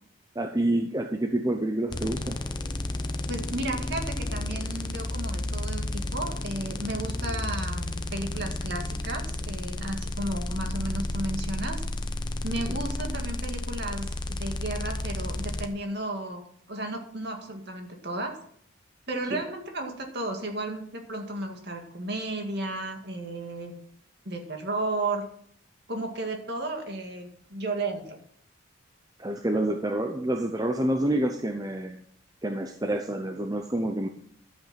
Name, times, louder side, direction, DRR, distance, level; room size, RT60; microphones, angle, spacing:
voice 1, 0.4-2.4 12.7-12.8 19.3-19.4 29.2-32.0 32.4-34.1, right 1 dB, 15° right, 5 dB, 0.6 m, -28 dB
sound 1, 1.9-15.7, left 2 dB, 20° left, 0.7 m, -32 dB
voice 2, 3.3-11.8 12.4-16.4 16.7-18.4 19.1-23.7 24.3-25.3 25.9-28.2, right 2 dB, 50° right, 3 dB, 2.1 m, -33 dB
12.0 x 8.0 x 5.9 m, 0.63 s
head